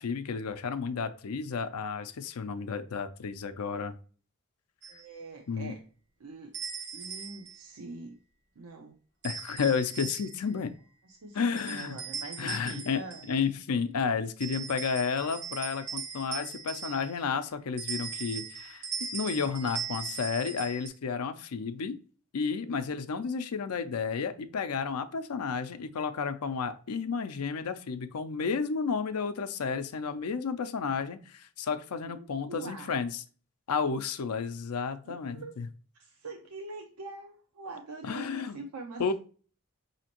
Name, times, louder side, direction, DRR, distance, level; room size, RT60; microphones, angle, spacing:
voice 1, 0.0-3.9 5.5-5.7 9.2-10.8 11.3-12.0 12.4-18.8 19.1-22.0 22.3-33.2 33.7-35.7 38.0-38.6 39.0-39.1, left 5 dB, 80° left, 10 dB, 0.5 m, -32 dB
sound 1, 4.8-5.0 6.5-7.6 9.2-10.5 11.6-13.4 14.4-17.3 17.8-20.9, right 6 dB, 55° right, 1.2 m, -39 dB
voice 2, 4.9-5.8 6.2-6.5 6.9-8.2 8.6-8.9 11.0-13.3 31.9-32.9 35.0-35.5 35.9-39.1, right 3 dB, 85° right, 2 dB, 0.6 m, -44 dB
5.1 x 2.8 x 2.8 m, 0.40 s
head